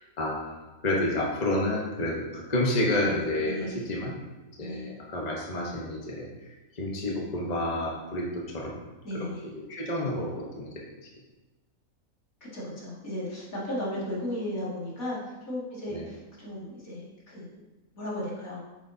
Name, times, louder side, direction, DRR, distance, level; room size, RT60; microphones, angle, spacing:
voice 1, 0.2-4.1 4.6-6.3 6.7-8.8 9.1-9.3 9.5-10.9 15.9-16.0, left 1 dB, 30° left, -2 dB, 1.1 m, -30 dB
voice 2, 3.5-3.8 4.6-4.9 9.0-9.5 12.4-17.6 17.9-18.6, left 1 dB, 80° left, -7 dB, 2.6 m, -35 dB
8.6 x 6.4 x 2.7 m, 1.1 s
omnidirectional pair, 1.4 m